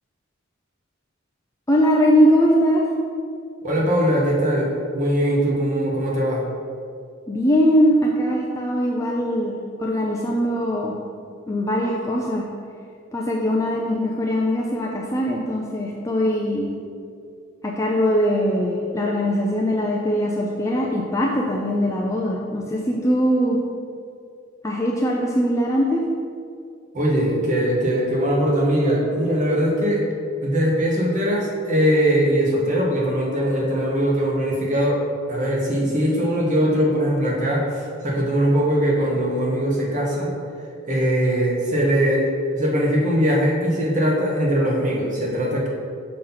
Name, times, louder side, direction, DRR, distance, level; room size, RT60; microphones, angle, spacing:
voice 1, 1.7-2.9 7.3-11.0 11.5-12.5 13.1-16.7 17.6-23.6 24.6-26.0, equal, 15° left, -2 dB, 0.5 m, -21 dB
voice 2, 3.6-6.4 26.9-30.0 30.4-35.0 35.3-40.3 40.8-45.7, equal, 40° right, -3 dB, 1.3 m, -21 dB
6.3 x 5.8 x 3.9 m, 2.3 s
head